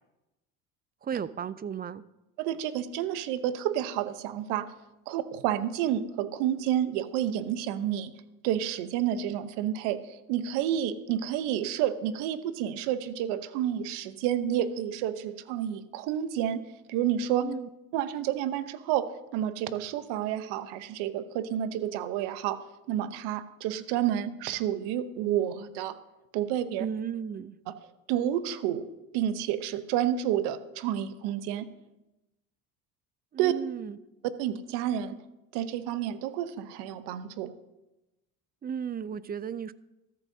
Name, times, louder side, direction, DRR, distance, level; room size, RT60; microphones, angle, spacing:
voice 1, 1.0-2.0 17.4-17.7 26.8-27.6 33.3-34.0 38.6-39.7, right 7 dB, 25° right, 17 dB, 0.4 m, -34 dB
voice 2, 2.4-4.7 5.1-8.1 8.4-16.6 16.9-17.5 17.9-19.1 19.3-22.6 22.9-26.0 26.3-26.9 27.7-27.8 28.1-28.9 29.1-31.7 33.4-33.5 34.4-35.1 35.5-37.5, right 11 dB, 75° right, 12 dB, 1.0 m, -30 dB
13.5 x 13.5 x 2.8 m, 0.98 s
supercardioid pair, 85°, 40 cm